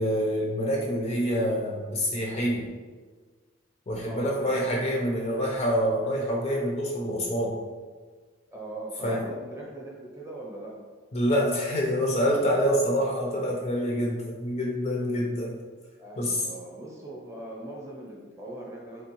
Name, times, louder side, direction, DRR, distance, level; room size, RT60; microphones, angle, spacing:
voice 1, 0.0-2.7 3.9-7.6 9.0-9.2 11.1-15.6 16.2-16.4, equal, 30° left, -1 dB, 0.4 m, -26 dB
voice 2, 4.0-4.7 6.1-6.2 8.5-10.8 16.0-19.0, right 1 dB, 15° right, -3 dB, 0.7 m, -40 dB
3.4 x 3.4 x 2.9 m, 1.4 s
head